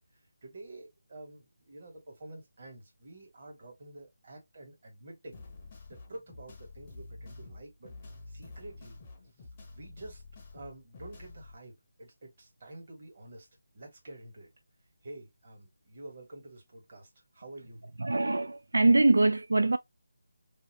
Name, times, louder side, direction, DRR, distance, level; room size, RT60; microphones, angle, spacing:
voice 1, 0.4-5.4 5.9-7.9 8.3-9.0 9.7-10.2 10.5-13.5 13.7-14.5 15.0-17.8, right 2 dB, 40° right, 1.5 m, -48 dB
sound 1, 5.3-11.5, left 3 dB, 20° left, 0.6 m, -48 dB
voice 2, 18.0-19.8, right 2 dB, 85° right, 0.3 m, -23 dB
2.7 x 2.6 x 3.0 m
figure-of-eight pair, 170°, 0 cm